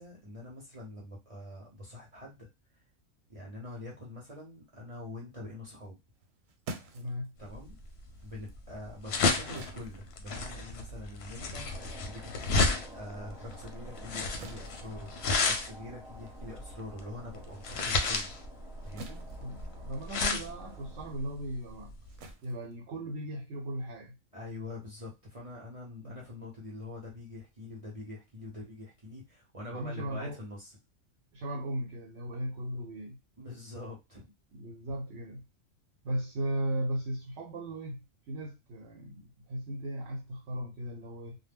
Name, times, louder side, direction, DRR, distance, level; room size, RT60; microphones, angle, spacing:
voice 1, 0.0-2.5 3.3-6.0 7.4-7.8 8.2-18.3 18.8-19.2 24.3-30.7 33.4-34.2, left 2 dB, 35° right, -3 dB, 0.6 m, -44 dB
sound 1, 6.1-12.9 13.3-23.5, right 2 dB, 85° right, 1.0 m, -51 dB
voice 2, 6.9-7.3 19.4-21.9 22.4-24.2 26.0-26.1 29.7-30.4 31.3-33.2 34.5-35.4 36.0-41.4, right 1 dB, 65° right, 2 dB, 0.9 m, -37 dB
sound 2, 7.5-22.3, left 3 dB, 65° left, 0.7 m, -32 dB
sound 3, 11.7-21.1, equal, 5° right, 0.8 m, -52 dB
2.1 x 2.0 x 3.4 m, 0.24 s
omnidirectional pair, 1.4 m